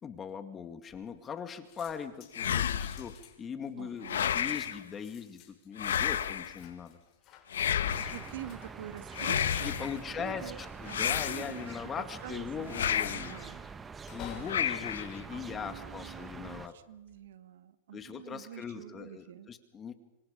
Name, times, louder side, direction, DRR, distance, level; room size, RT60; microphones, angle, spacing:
voice 1, 0.0-7.0 9.6-13.4 14.1-16.7 17.9-19.9, left 7 dB, 20° left, 9 dB, 2.2 m, -40 dB
sound 1, 0.9-1.4 1.6-16.2 16.8-17.2, left 8 dB, 40° left, 5.6 m, -54 dB
sound 2, 2.3-3.1 4.0-4.8 5.8-6.6 7.5-8.3 9.1-10.0 10.9-11.8 12.7-13.4 14.5-15.2, left 9 dB, 85° left, 1.3 m, -31 dB
voice 2, 3.8-4.3 7.9-10.6 10.8-13.7 14.2-14.6 15.3-19.5, right 10 dB, 75° right, 11 dB, 1.8 m, -47 dB
sound 3, 7.8-16.7, right 5 dB, 15° right, 1.1 m, -45 dB
26.5 x 25.0 x 5.3 m, 0.90 s
hypercardioid pair, 125°, 0 cm